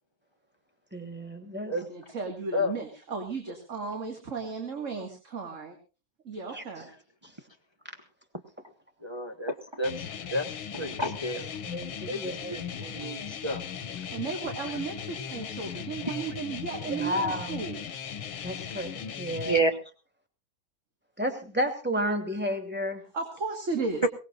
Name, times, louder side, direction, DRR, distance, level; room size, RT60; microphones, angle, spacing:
voice 1, 0.9-1.7 6.5-6.6 11.6-12.5 16.9-17.6 18.4-19.7 21.2-23.0, equal, 5° right, 4 dB, 2.7 m, -32 dB
voice 2, 1.8-5.8 6.2-6.9 14.1-17.8 23.1-24.1, right 4 dB, 40° right, 4 dB, 2.3 m, -35 dB
voice 3, 9.0-11.5 12.1-13.6 16.1-16.2 19.4-19.7 24.0-24.1, right 1 dB, 20° right, 3 dB, 0.8 m, -30 dB
sound 1, 9.8-19.6, left 8 dB, 85° left, 2.0 m, -38 dB
23.0 x 18.5 x 2.5 m, 0.33 s
omnidirectional pair, 2.2 m